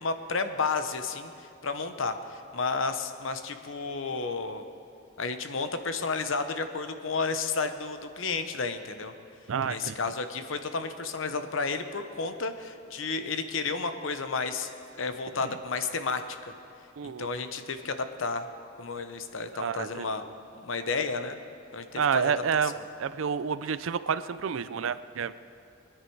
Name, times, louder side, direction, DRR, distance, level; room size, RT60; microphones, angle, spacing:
voice 1, 0.0-4.6 5.2-9.1 9.7-14.7 14.9-16.2 16.5-16.6 17.0-18.5 18.8-20.2 20.5-21.4 21.7-22.3, left 4 dB, 70° left, 9 dB, 0.9 m, -32 dB
voice 2, 9.5-10.0 15.4-15.5 17.0-17.3 19.5-20.3 22.0-22.7 23.0-25.3, right 6 dB, 75° right, 14 dB, 0.4 m, -29 dB
21.0 x 10.0 x 4.6 m, 2.4 s
head